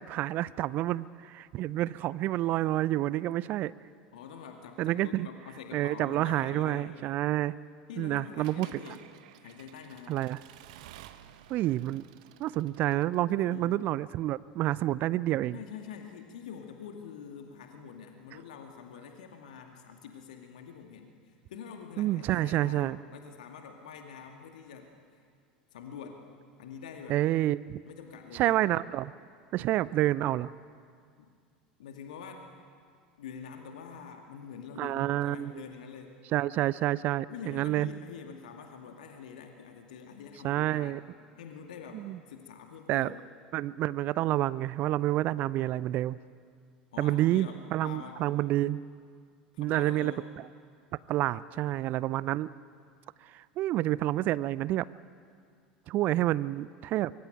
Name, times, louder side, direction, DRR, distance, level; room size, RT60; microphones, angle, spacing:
voice 1, 0.0-3.7 4.8-5.3 5.7-7.5 8.0-8.8 10.1-10.4 11.5-12.0 12.4-15.6 22.0-23.0 27.1-27.8 28.3-29.1 29.5-30.5 34.8-35.5 36.3-37.9 40.4-41.0 41.9-42.2 42.9-43.1 43.5-46.2 47.0-48.8 49.6-50.1 51.1-52.5 53.3-54.9 55.9-57.1, right 15 dB, 40° right, 20 dB, 0.6 m, -28 dB
voice 2, 4.1-6.9 7.9-9.1 9.4-10.3 13.3-13.8 15.5-25.2 25.7-26.2 26.6-27.2 27.9-28.6 31.2-31.3 31.8-32.4 33.2-36.2 37.3-41.1 41.4-43.2 46.9-48.2 49.5-50.3 51.5-51.8, left 7 dB, 65° left, 4 dB, 2.2 m, -46 dB
Accelerating revving vroom / Mechanisms, 8.4-13.3, right 12 dB, 60° right, 1.1 m, -52 dB
24.5 x 23.5 x 9.2 m, 2.1 s
figure-of-eight pair, 75°, 5 cm